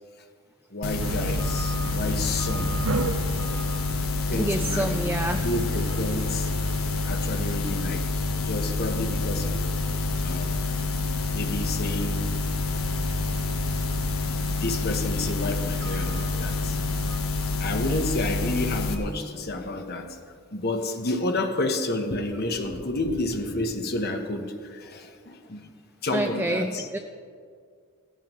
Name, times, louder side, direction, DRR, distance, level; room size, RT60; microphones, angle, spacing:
voice 1, 0.7-2.7 4.3-5.1 5.4-6.5 7.0-8.1 8.5-9.6 10.2-10.8 11.3-12.3 14.4-16.8 17.6-20.2 20.5-25.7 26.0-26.9, left 2 dB, 45° left, 4 dB, 1.1 m, -30 dB
sound 1, 0.8-18.9, left 3 dB, 75° left, 1.2 m, -28 dB
sound 2, 1.0-17.2, right 3 dB, 75° right, 0.6 m, -36 dB
voice 2, 4.3-5.4 26.1-27.0, right 1 dB, 10° right, 5 dB, 0.4 m, -28 dB
17.5 x 14.0 x 3.1 m, 2.1 s
head